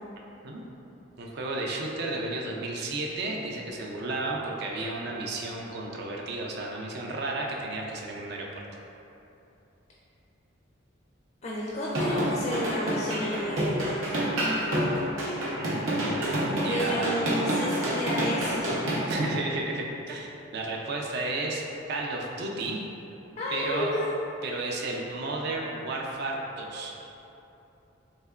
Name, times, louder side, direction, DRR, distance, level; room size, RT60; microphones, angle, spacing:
voice 1, 1.2-8.5 15.6-17.2 19.1-21.6 21.9-22.8 23.5-24.0 24.4-27.0, right 2 dB, 55° right, -1 dB, 0.4 m, -33 dB
voice 2, 11.4-14.2 16.6-18.8 23.4-24.1, equal, 35° left, -6 dB, 0.4 m, -31 dB
sound 1, 11.8-19.2, equal, 85° right, 0.7 m, -28 dB
3.6 x 3.2 x 2.3 m, 2.9 s
head